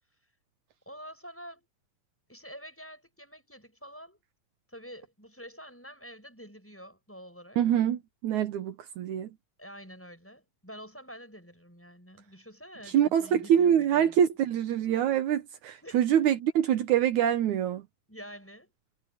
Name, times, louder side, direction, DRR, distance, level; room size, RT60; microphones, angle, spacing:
voice 1, 0.9-1.7 2.3-4.2 4.7-7.6 9.6-14.2 15.8-16.2 18.1-18.7, equal, 5° left, 7.1 m, -47 dB
voice 2, 7.6-9.3 12.9-17.8, right 9 dB, 75° right, 2.4 m, -25 dB
omnidirectional pair, 3.6 m